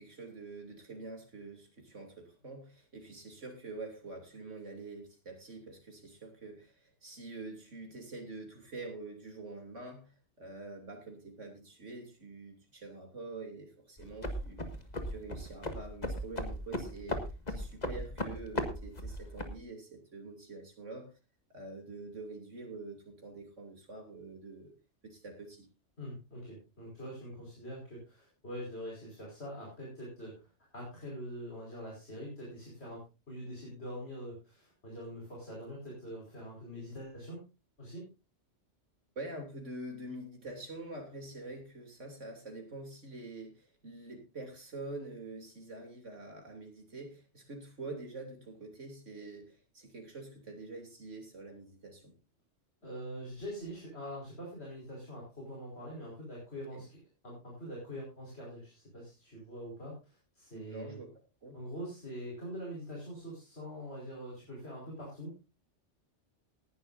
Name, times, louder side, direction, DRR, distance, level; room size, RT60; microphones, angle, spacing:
voice 1, 0.0-14.7 15.1-21.1 21.5-24.7 25.0-25.7 39.1-52.1 56.7-56.8 60.5-61.1 61.4-61.6, right 2 dB, 80° right, 2 dB, 3.4 m, -46 dB
sound 1, 14.0-19.6, left 1 dB, 35° left, 1.9 m, -37 dB
voice 2, 26.0-30.4 30.7-37.4 37.8-38.0 52.8-57.0 57.2-61.0 61.5-65.4, equal, 60° left, -3 dB, 5.4 m, -44 dB
19.0 x 11.5 x 2.6 m, 0.29 s
omnidirectional pair, 1.2 m